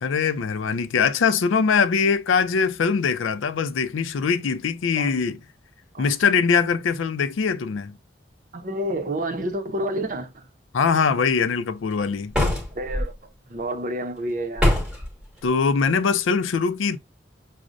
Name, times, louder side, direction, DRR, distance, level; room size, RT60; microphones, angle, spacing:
voice 1, 0.0-5.4 6.0-8.0 10.7-12.3 15.4-17.0, left 5 dB, 90° left, 0.4 m, -22 dB
voice 2, 8.5-10.5 12.7-14.8, right 1 dB, 45° right, 0.6 m, -29 dB
sound 1, 12.3-13.1 14.6-15.1, left 1 dB, 5° right, 1.0 m, -22 dB
6.2 x 2.1 x 2.4 m
head